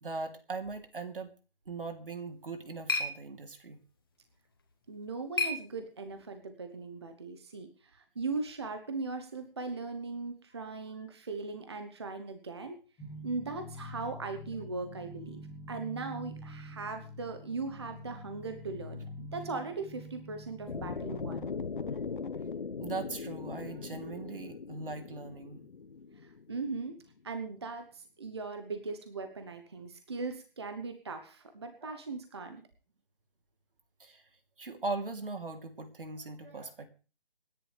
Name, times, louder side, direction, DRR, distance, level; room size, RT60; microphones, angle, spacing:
voice 1, 0.0-1.3 1.7-3.8 22.8-25.6 31.8-32.0 34.0-34.2 34.6-36.9, right 3 dB, 65° right, 6 dB, 3.1 m, -39 dB
sound 1, 2.1-6.4, left 3 dB, 25° left, 1.2 m, -38 dB
voice 2, 4.9-12.8 13.2-15.4 15.7-21.5 26.2-26.9 27.2-32.6, right 3 dB, 25° right, 7 dB, 1.0 m, -39 dB
sound 2, 13.0-21.4, equal, ahead, 0.8 m, -46 dB
sound 3, 20.7-26.8, left 5 dB, 60° left, 1.1 m, -39 dB
26.0 x 10.5 x 3.4 m, 0.36 s
hypercardioid pair, 175°, 29 cm